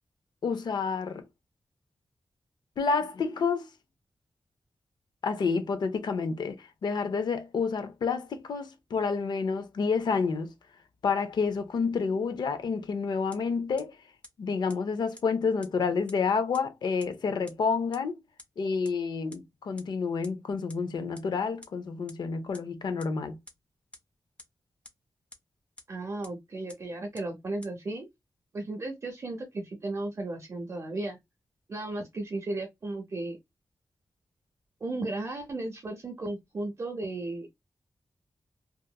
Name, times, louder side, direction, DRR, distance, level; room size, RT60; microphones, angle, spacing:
voice 1, 0.4-1.2 2.8-3.7 5.2-10.5 11.0-14.0 14.4-18.2 18.6-23.4, left 5 dB, 75° left, 0.4 m, -29 dB
sound 1, 13.3-13.4 13.8-13.9 14.2-14.3 14.7-14.8 15.2-15.3 15.6-15.7 16.1-16.2 16.5-16.6 17.0-17.1 17.5-17.6 17.9-18.0 18.4-18.5 18.8-18.9 19.3-19.4 19.8-19.9 20.2-20.3 20.7-20.8 21.2-21.3 21.6-21.7 22.1-22.2 22.5-22.6 23.0-23.1 23.5-23.6 23.9-24.0 24.4-24.5 24.9-25.0 25.3-25.4 25.8-25.9 26.2-26.3 26.7-26.8 27.2-27.3 27.6-27.7, left 1 dB, 15° left, 0.4 m, -47 dB
voice 2, 25.9-28.1 28.5-31.2 31.7-33.4 34.8-37.5, right 2 dB, 40° right, 0.5 m, -35 dB
2.8 x 2.4 x 2.2 m
wide cardioid pair, 150°, 8 cm